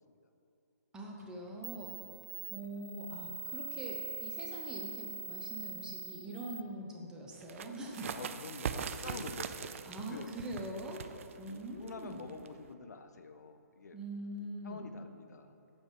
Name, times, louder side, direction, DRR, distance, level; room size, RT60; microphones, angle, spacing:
voice 1, 0.9-2.0 2.5-8.3 9.0-9.2 9.9-12.3 13.9-14.9, right 1 dB, 10° right, -2 dB, 0.8 m, -43 dB
sound 1, 1.2-1.3 1.6-6.6, right 3 dB, 65° right, 0.8 m, -43 dB
voice 2, 2.1-2.5 8.1-10.3 11.3-14.0 14.6-15.6, left 4 dB, 70° left, 9 dB, 0.5 m, -48 dB
sound 2, 7.4-12.7, right 7 dB, 50° right, 0.4 m, -42 dB
7.4 x 4.8 x 5.3 m, 2.8 s
hypercardioid pair, 145°, 9 cm